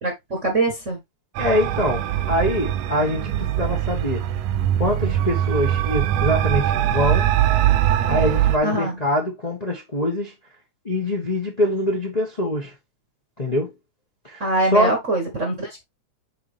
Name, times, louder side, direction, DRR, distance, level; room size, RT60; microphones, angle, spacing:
voice 1, 0.0-1.0 8.6-9.0 14.4-15.8, right 2 dB, 35° right, 1.2 m, -23 dB
voice 2, 1.4-4.2 4.8-7.3 8.1-10.3 10.8-12.7 13.4-13.7 14.2-15.0, left 1 dB, 30° left, 0.7 m, -24 dB
sound 1, 1.4-8.6, right 12 dB, 75° right, 1.7 m, -22 dB
6.7 x 4.4 x 3.3 m
omnidirectional pair, 3.4 m